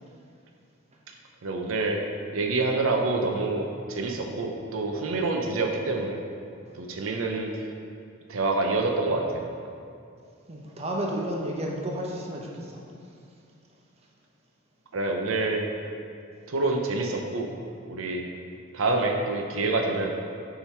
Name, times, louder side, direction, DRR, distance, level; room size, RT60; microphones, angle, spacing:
voice 1, 1.4-2.0 2.3-6.2 6.8-7.5 8.3-9.4 14.9-15.7 16.5-17.5 17.9-18.2 18.7-20.1, right 3 dB, 85° right, 2 dB, 0.6 m, -27 dB
voice 2, 10.5-12.8, right 1 dB, 30° right, -1 dB, 0.7 m, -32 dB
7.0 x 3.9 x 4.4 m, 2.4 s
head